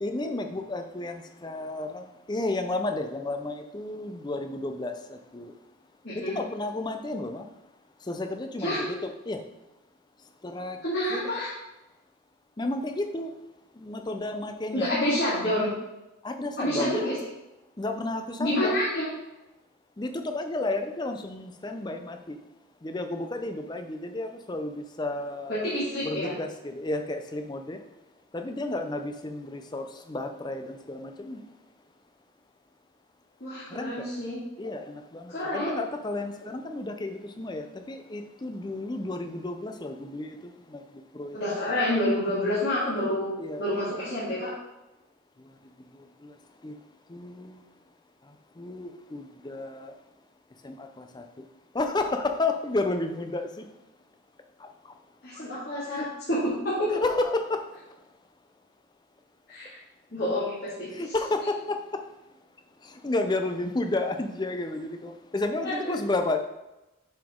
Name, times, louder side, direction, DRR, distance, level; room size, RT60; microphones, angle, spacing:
voice 1, 0.0-5.5 6.1-7.5 8.0-9.4 10.4-10.8 11.1-11.4 12.6-13.3 13.8-15.0 16.2-17.1 17.8-18.8 20.0-22.4 22.8-25.8 26.0-27.8 28.3-31.5 33.7-34.1 34.6-41.4 43.4-43.6 45.4-45.5 45.9-46.4 46.6-46.8 47.1-47.6 48.2-49.9 50.6-51.4 51.7-53.7 54.6-55.0 55.3-55.4 55.9-56.1 56.9-57.7 60.9-62.0 62.8-66.4, left 2 dB, 20° left, 6 dB, 0.5 m, -32 dB
voice 2, 6.0-6.4 8.6-8.8 10.8-11.5 14.7-15.7 16.6-17.1 18.4-19.1 25.5-26.3 33.4-34.4 35.3-35.7 41.3-43.3 43.6-44.5 55.2-57.0 59.5-59.8 60.1-60.9 65.6-65.7, left 1 dB, 50° left, -10 dB, 2.1 m, -28 dB
7.5 x 4.9 x 3.6 m, 0.99 s
head